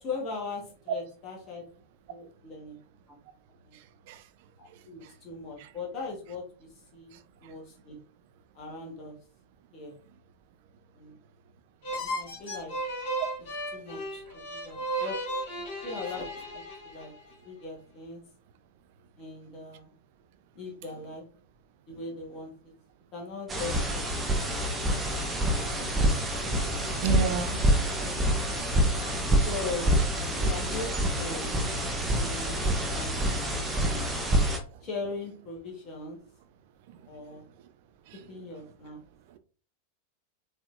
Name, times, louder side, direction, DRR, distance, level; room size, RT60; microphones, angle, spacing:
voice 1, 0.0-1.6 2.1-2.8 3.1-3.2 3.6-3.8 4.6-8.0 8.5-9.1 9.7-10.0 11.0-11.2 11.9-12.7 13.7-14.2 14.5-15.1 15.6-16.3 16.5-16.6 16.9-17.1 17.4-18.2 19.2-19.9 20.5-21.2 21.9-22.5 23.1-24.9 29.4-30.0 30.3-30.9 31.2-31.5 32.2-34.1 34.8-36.2 37.1-37.5 38.3-39.0, left 3 dB, 30° left, 1.3 m, -40 dB
sound 1, 11.8-17.3, right 1 dB, 50° left, 2.1 m, -35 dB
sound 2, 23.5-34.6, right 1 dB, 20° right, 0.9 m, -27 dB
voice 2, 27.0-27.6 29.2-29.3 38.1-38.2, right 6 dB, 50° right, 0.5 m, -30 dB
4.8 x 3.4 x 2.5 m
figure-of-eight pair, 90°, 0 cm